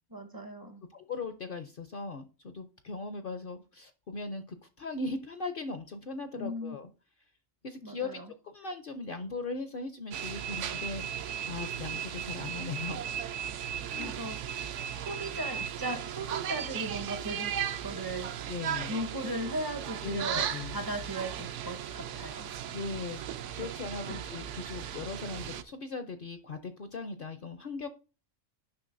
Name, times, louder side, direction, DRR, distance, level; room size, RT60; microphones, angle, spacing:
voice 1, 0.1-0.8 6.3-6.8 7.8-8.3 14.0-14.4 14.7-18.3 18.9-22.5 24.1-24.2, right 1 dB, 25° right, 0.5 m, -37 dB
voice 2, 0.9-6.9 7.6-11.1 11.4-13.1 13.9-14.2 18.5-18.9 20.0-20.2 20.5-20.8 22.7-27.9, left 3 dB, 55° left, 0.7 m, -39 dB
sound 1, 10.1-25.6, right 9 dB, 70° right, 0.9 m, -36 dB
9.7 x 5.9 x 2.5 m
omnidirectional pair, 1.3 m